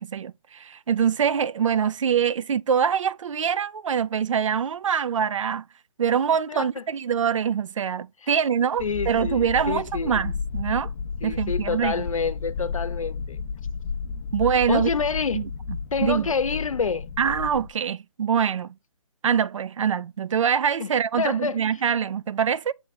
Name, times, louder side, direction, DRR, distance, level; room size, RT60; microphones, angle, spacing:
voice 1, 0.0-5.6 6.0-10.9 11.2-12.0 14.3-14.9 15.3-15.4 16.0-16.3 17.2-18.7 19.2-22.7, right 7 dB, 70° right, 0.5 m, -24 dB
voice 2, 6.5-6.8 8.2-8.3 8.8-10.2 11.2-13.4 14.7-15.4 15.9-17.1 20.8-20.9 21.2-21.8, left 5 dB, 90° left, 0.7 m, -28 dB
sound 1, 8.8-17.7, left 5 dB, 25° left, 0.5 m, -32 dB
7.2 x 3.4 x 4.1 m
hypercardioid pair, 155°, 17 cm